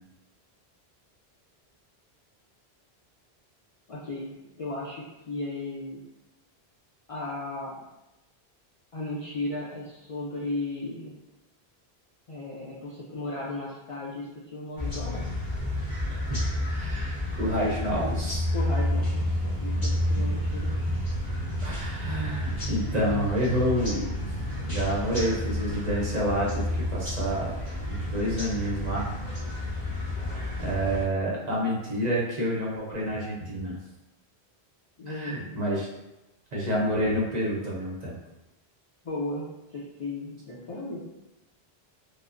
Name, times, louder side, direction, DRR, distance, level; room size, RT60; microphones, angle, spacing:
voice 1, 3.9-4.3 4.6-6.0 7.1-7.9 8.9-11.1 12.3-15.3 18.5-20.7 35.0-35.5 39.0-41.0, left 2 dB, 55° left, -6 dB, 0.4 m, -35 dB
sound 1, 14.8-31.0, left 1 dB, 25° left, 0.8 m, -30 dB
voice 2, 16.1-18.4 21.6-24.1 24.7-27.5 27.9-29.0 30.6-33.8 35.1-35.9 36.5-38.2, equal, 50° right, -5 dB, 0.6 m, -28 dB
3.1 x 2.0 x 2.4 m, 0.98 s
omnidirectional pair, 1.1 m